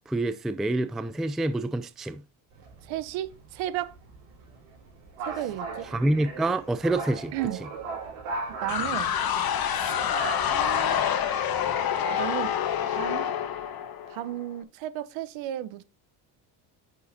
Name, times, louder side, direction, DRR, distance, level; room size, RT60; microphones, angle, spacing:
voice 1, 0.1-2.2 5.9-7.3, right 2 dB, ahead, 0.4 m, -27 dB
sound 1, 2.5-11.0, right 3 dB, 80° right, 4.3 m, -38 dB
voice 2, 2.8-3.9 5.2-5.9 7.3-7.6 8.6-9.1 9.7-9.9 10.5-11.2 12.1-12.5 12.9-13.3 14.1-15.8, right 13 dB, 65° right, 1.0 m, -34 dB
sound 2, 8.7-14.4, left 9 dB, 45° left, 1.4 m, -27 dB
8.2 x 6.3 x 2.7 m
supercardioid pair, 85°, 49 cm